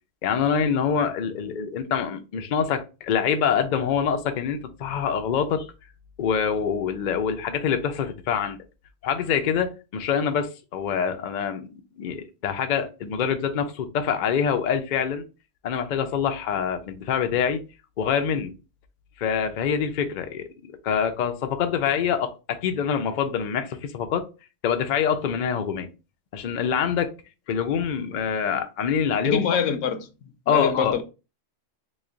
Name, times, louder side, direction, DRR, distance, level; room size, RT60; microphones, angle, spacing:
voice 1, 0.2-5.7 6.2-8.6 9.0-11.7 12.0-15.2 15.6-17.6 18.0-18.5 19.2-24.3 24.6-25.9 26.3-27.1 27.5-29.4 30.5-30.9, left 7 dB, 60° left, 0.5 m, -25 dB
voice 2, 29.2-31.0, left 7 dB, 80° left, 1.0 m, -25 dB
3.1 x 2.2 x 3.7 m
omnidirectional pair, 1.3 m